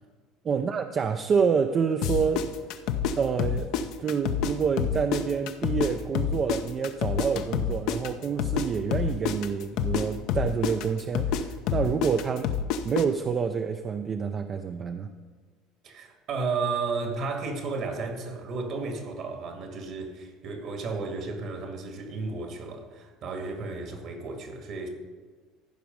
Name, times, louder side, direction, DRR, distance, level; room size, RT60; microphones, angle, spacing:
voice 1, 0.4-2.5 3.2-3.7 4.0-12.5 12.8-15.1, right 6 dB, 40° right, 0.5 m, -27 dB
sound 1, 2.0-4.5 4.8-8.7 8.9-13.0, left 8 dB, 65° left, 0.7 m, -27 dB
voice 2, 15.8-24.9, right 4 dB, 55° right, 2.0 m, -33 dB
14.5 x 5.2 x 5.3 m
supercardioid pair, 90°, 0 cm